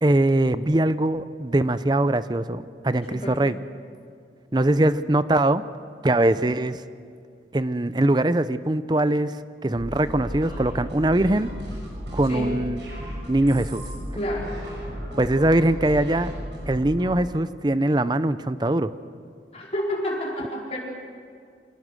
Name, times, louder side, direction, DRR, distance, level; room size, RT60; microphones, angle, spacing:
voice 1, 0.0-3.6 4.5-5.6 6.0-6.8 7.5-9.3 9.6-11.5 12.1-12.8 13.3-13.8 15.2-16.3 16.7-18.9, right 1 dB, 25° right, 14 dB, 0.6 m, -22 dB
voice 2, 3.1-3.5 12.3-12.5 14.1-14.6 19.5-20.8, left 1 dB, 35° left, -3 dB, 4.3 m, -29 dB
sound 1, 9.7-17.1, equal, 75° right, 7.1 m, -35 dB
26.0 x 18.5 x 6.4 m, 2.2 s
head